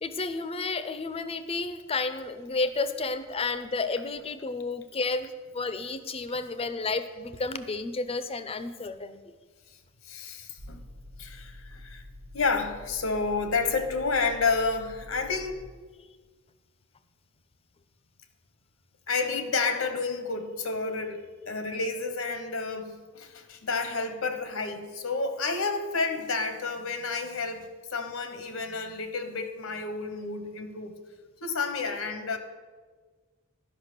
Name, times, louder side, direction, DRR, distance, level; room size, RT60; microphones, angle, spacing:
voice 1, 0.0-9.2, left 3 dB, 30° left, 12 dB, 0.5 m, -31 dB
voice 2, 10.0-10.8 11.2-12.0 12.3-15.6 19.1-30.9 31.4-32.4, left 4 dB, 80° left, 9 dB, 1.0 m, -30 dB
sound 1, 10.6-15.6, left 1 dB, 60° right, 1.3 m, -47 dB
11.5 x 5.5 x 6.6 m, 1.4 s
head